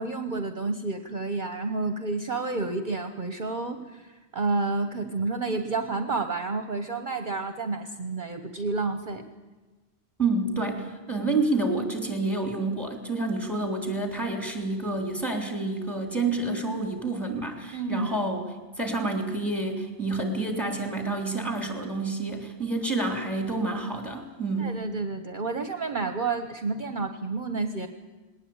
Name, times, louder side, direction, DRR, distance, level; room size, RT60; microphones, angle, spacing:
voice 1, 0.0-9.2 17.7-18.1 24.6-27.9, right 3 dB, 45° right, 8 dB, 1.2 m, -30 dB
voice 2, 10.2-18.4 18.8-24.8, right 2 dB, ahead, 3 dB, 3.5 m, -28 dB
20.0 x 18.5 x 8.8 m, 1.3 s
omnidirectional pair, 1.1 m